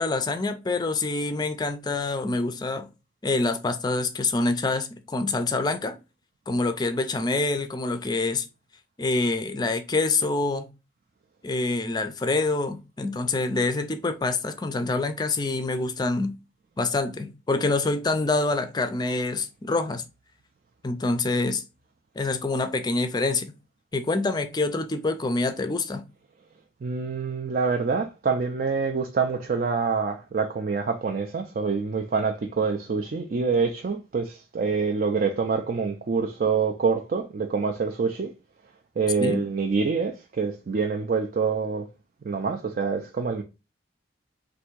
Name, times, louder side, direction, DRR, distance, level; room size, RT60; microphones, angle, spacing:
voice 1, 0.0-2.9 3.2-6.0 6.5-8.5 9.0-10.7 11.4-16.3 16.8-20.0 20.8-21.6 22.2-23.5 23.9-26.0 39.2-39.4, left 3 dB, 20° left, 0.4 m, -26 dB
voice 2, 26.8-38.3 39.0-41.9 42.2-43.4, right 5 dB, 45° right, 0.4 m, -26 dB
3.4 x 2.6 x 4.5 m
head